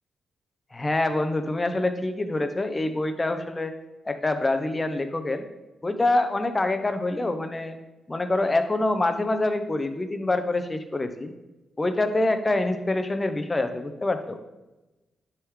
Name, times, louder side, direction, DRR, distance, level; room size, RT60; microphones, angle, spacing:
voice 1, 0.7-3.7 4.1-5.4 5.8-7.8 8.1-11.3 11.8-14.4, left 2 dB, 20° left, 8 dB, 0.6 m, -25 dB
9.7 x 3.6 x 3.0 m, 1.1 s
cardioid pair, 90°, 0 cm